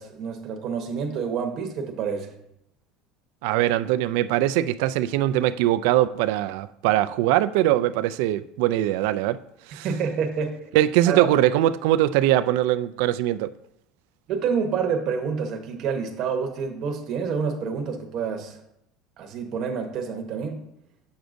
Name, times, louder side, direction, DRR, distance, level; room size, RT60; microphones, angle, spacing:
voice 1, 0.0-2.3 9.8-10.6 11.1-11.3 14.3-18.6 19.2-20.6, right 6 dB, 45° right, 1.0 m, -28 dB
voice 2, 3.4-9.4 9.7-9.9 10.7-13.5, right 14 dB, 75° right, 0.3 m, -22 dB
7.9 x 6.2 x 2.6 m
cardioid pair, 155°, 0 cm